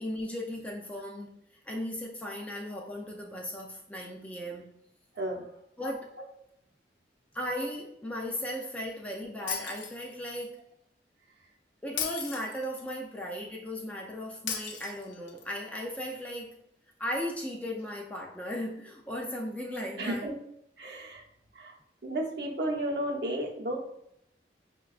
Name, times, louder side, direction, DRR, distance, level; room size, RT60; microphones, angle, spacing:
voice 1, 0.0-4.7 5.8-6.1 7.3-10.6 11.8-16.6 17.0-20.3, equal, 10° left, 0 dB, 0.3 m, -36 dB
voice 2, 5.1-5.5 20.0-20.3 20.8-21.2 21.5-21.8 22.0-23.8, right 1 dB, 65° right, -1 dB, 0.7 m, -33 dB
Shatter, 9.5-10.4 12.0-13.0 14.5-15.5, left 7 dB, 85° left, 0.5 m, -36 dB
5.5 x 2.2 x 2.3 m, 0.76 s
head